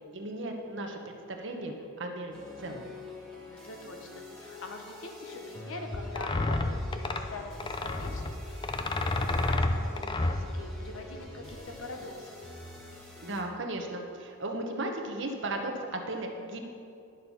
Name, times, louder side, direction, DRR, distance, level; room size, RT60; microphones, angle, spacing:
voice 1, 0.1-2.8 13.2-16.6, right 2 dB, 60° right, 3 dB, 1.1 m, -36 dB
sound 1, 2.3-13.4, left 2 dB, 5° left, 1.8 m, -46 dB
voice 2, 3.5-12.4, left 2 dB, 75° left, 3 dB, 1.1 m, -44 dB
sound 2, 5.9-11.8, left 2 dB, 25° left, 0.4 m, -31 dB
11.0 x 6.6 x 5.5 m, 2.6 s
head